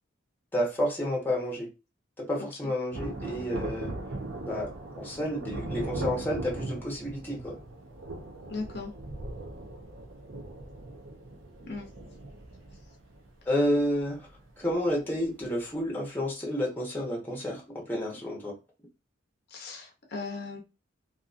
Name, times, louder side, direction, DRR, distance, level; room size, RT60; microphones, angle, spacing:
voice 1, 0.5-1.7 2.2-3.9 4.4-4.7 5.0-7.6 13.5-14.3 14.6-18.5, equal, 10° left, 0.8 m, -30 dB
Thunder, 2.9-14.9 15.2-15.3, right 2 dB, 75° right, 0.6 m, -39 dB
voice 2, 8.5-8.9 11.7-11.9 19.5-20.6, left 3 dB, 55° left, 0.7 m, -37 dB
2.7 x 2.5 x 2.4 m
head